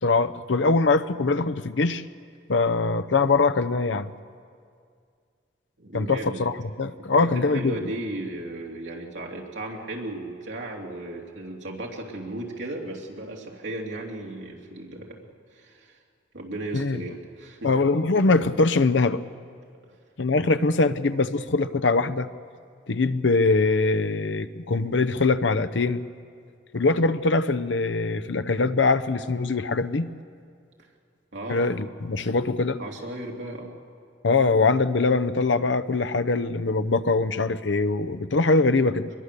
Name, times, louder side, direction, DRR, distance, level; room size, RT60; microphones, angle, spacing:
voice 1, 0.0-2.0 2.5-4.1 5.9-7.8 16.7-17.0 17.6-19.2 20.2-22.3 22.9-26.0 26.7-30.1 31.5-32.8 34.2-39.1, left 3 dB, 85° left, 11 dB, 0.7 m, -22 dB
voice 2, 5.8-6.4 7.0-15.2 15.5-16.0 16.3-17.7 31.3-31.7 32.8-33.7, right 2 dB, 80° right, -1 dB, 2.8 m, -35 dB
24.0 x 21.5 x 6.8 m, 2.2 s
head